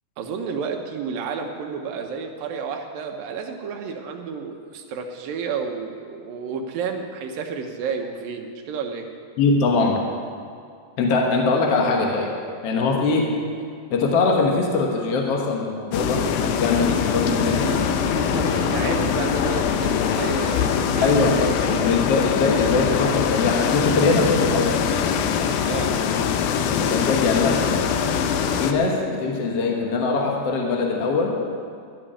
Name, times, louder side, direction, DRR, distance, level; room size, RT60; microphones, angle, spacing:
voice 1, 0.2-9.1 18.1-22.0 25.6-26.1, right 5 dB, 75° right, 4 dB, 2.6 m, -31 dB
voice 2, 9.4-10.0 11.0-12.3 12.6-13.3 13.9-17.7 21.0-24.8 26.7-27.7 28.6-31.3, left 3 dB, 60° left, 0 dB, 1.7 m, -22 dB
sound 1, 15.9-28.7, left 7 dB, 85° left, 2.5 m, -23 dB
14.0 x 6.0 x 10.0 m, 2.3 s
omnidirectional pair, 4.2 m